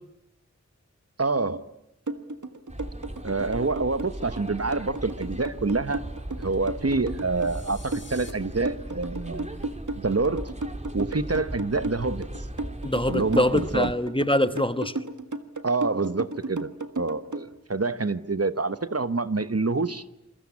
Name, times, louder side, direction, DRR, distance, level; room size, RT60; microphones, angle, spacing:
voice 1, 1.2-1.6 3.2-6.0 6.4-9.7 9.9-10.4 10.9-12.2 13.1-13.9 15.6-16.7 17.0-20.0, right 3 dB, 55° right, 1.2 m, -27 dB
sound 1, 2.1-17.5, right 2 dB, 85° right, 1.8 m, -34 dB
sound 2, 2.7-13.9, right 1 dB, 25° right, 3.0 m, -38 dB
sound 3, 7.4-8.3, left 2 dB, 40° left, 4.1 m, -47 dB
voice 2, 12.8-14.9, left 1 dB, 15° left, 1.2 m, -24 dB
28.0 x 23.0 x 8.7 m
wide cardioid pair, 45°, 29 cm